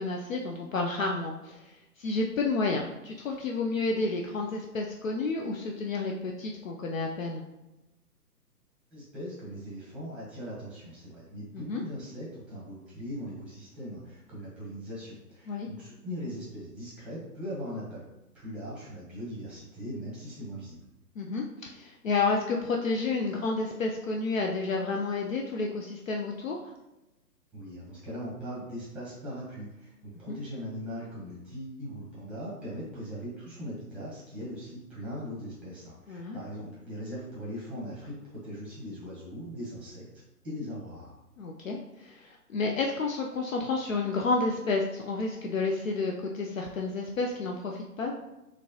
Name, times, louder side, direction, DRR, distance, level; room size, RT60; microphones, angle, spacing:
voice 1, 0.0-7.4 11.5-11.8 15.5-15.7 21.2-26.7 30.3-30.4 36.1-36.4 41.4-48.1, left 3 dB, 55° left, 1 dB, 0.5 m, -30 dB
voice 2, 8.9-18.0 18.3-20.8 27.5-40.1 40.4-41.2, equal, ahead, -7 dB, 0.8 m, -40 dB
4.1 x 3.1 x 2.8 m, 0.98 s
figure-of-eight pair, 130°, 48 cm